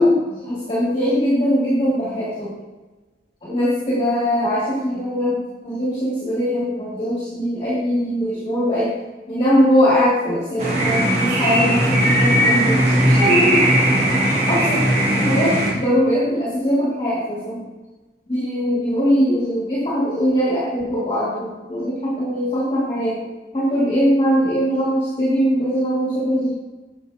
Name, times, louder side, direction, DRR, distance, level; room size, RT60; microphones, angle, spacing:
voice 1, 0.0-2.5 3.4-8.9 9.3-13.7 14.5-14.8 15.2-17.6 18.3-23.2 23.5-26.5, equal, 30° left, -9 dB, 2.4 m, -21 dB
sound 1, 10.6-15.7, right 1 dB, 40° right, 2.0 m, -18 dB
8.4 x 7.3 x 2.9 m, 1.1 s
head